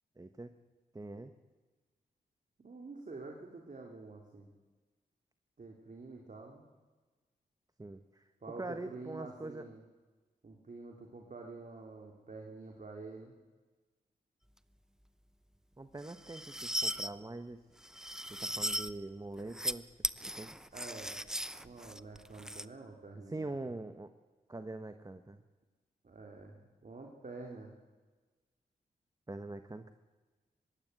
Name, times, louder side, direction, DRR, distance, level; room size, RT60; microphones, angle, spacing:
voice 1, 0.2-0.5 0.9-1.3 7.8-8.3 8.6-9.6 15.8-17.6 18.3-19.8 20.3-20.6 23.3-24.1 24.5-25.4 29.3-29.9, right 2 dB, 20° right, 9 dB, 1.3 m, -43 dB
voice 2, 2.6-4.5 5.6-6.6 8.4-9.8 10.4-13.3 20.2-20.3 20.7-21.2 21.6-23.7 26.0-26.5 26.8-27.7, right 3 dB, 45° right, 1 dB, 3.2 m, -48 dB
sound 1, 16.0-17.1 17.8-18.9 19.4-19.7 20.0-22.7, equal, 5° right, 0.8 m, -37 dB
22.0 x 16.5 x 8.0 m, 1.3 s
supercardioid pair, 45°, 18 cm